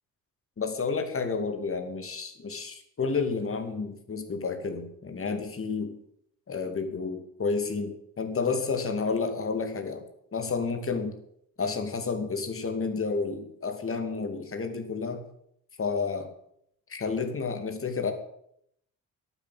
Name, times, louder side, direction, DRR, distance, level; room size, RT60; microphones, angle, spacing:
voice 1, 0.6-5.9 6.5-10.0 10.3-11.2 11.6-15.2 15.8-16.3 16.9-18.1, left 4 dB, 30° left, 6 dB, 2.6 m, -30 dB
13.5 x 8.5 x 8.0 m, 0.73 s
figure-of-eight pair, 45°, 42 cm